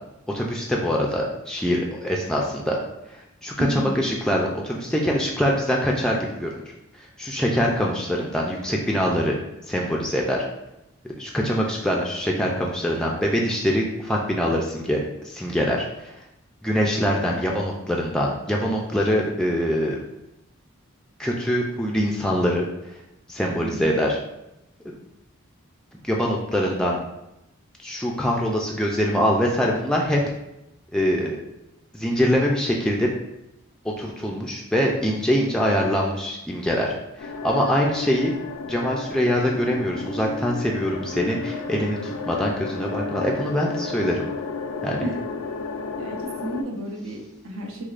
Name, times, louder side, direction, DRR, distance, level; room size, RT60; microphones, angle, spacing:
voice 1, 0.3-2.8 3.1-6.5 6.9-9.4 9.7-10.5 11.2-15.0 15.2-16.1 16.6-20.0 21.2-22.7 23.3-24.2 26.0-27.0 27.8-30.2 30.9-31.4 31.9-33.1 34.0-38.3 38.7-44.3 44.8-45.0, equal, 5° left, -2 dB, 0.3 m, -24 dB
voice 2, 3.6-4.0 23.6-23.9 45.0-45.2 46.0-47.8, right 1 dB, 75° right, 0 dB, 0.7 m, -32 dB
sound 1, 37.2-46.6, left 4 dB, 85° left, 0.3 m, -32 dB
6.1 x 2.1 x 2.4 m, 0.89 s
head